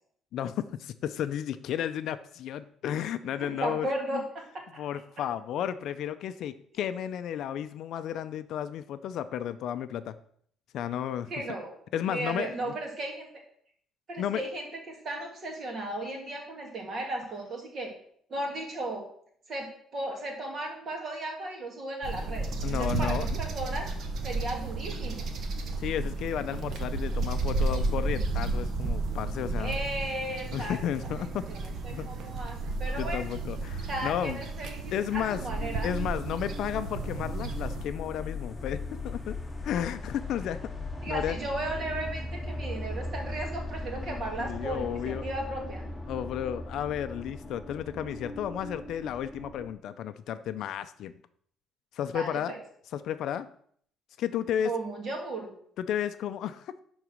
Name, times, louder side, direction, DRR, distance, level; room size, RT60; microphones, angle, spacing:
voice 1, 0.3-4.2 4.8-10.2 10.7-11.3 11.9-12.7 14.2-14.4 22.6-23.4 25.8-29.8 30.5-31.5 31.9-32.1 33.0-34.4 34.9-35.4 35.8-39.3 39.6-40.6 41.1-41.4 44.0-45.2 46.1-51.1 52.0-52.6 52.9-53.5 54.2-54.7 55.8-56.8, left 10 dB, 60° left, 12 dB, 0.5 m, -33 dB
voice 2, 3.4-4.6 11.3-11.8 12.1-13.3 14.1-17.9 18.3-19.0 19.5-23.9 24.2-25.3 29.6-30.8 31.1-33.2 33.9-35.9 41.0-45.8 52.1-52.6 54.6-55.5, right 1 dB, 35° right, 1 dB, 2.4 m, -35 dB
sound 1, 22.0-37.9, right 3 dB, 50° right, 1.2 m, -32 dB
sound 2, 35.6-49.7, left 2 dB, 10° left, 1.0 m, -38 dB
11.0 x 4.0 x 6.2 m, 0.62 s
cardioid pair, 170°, 0 cm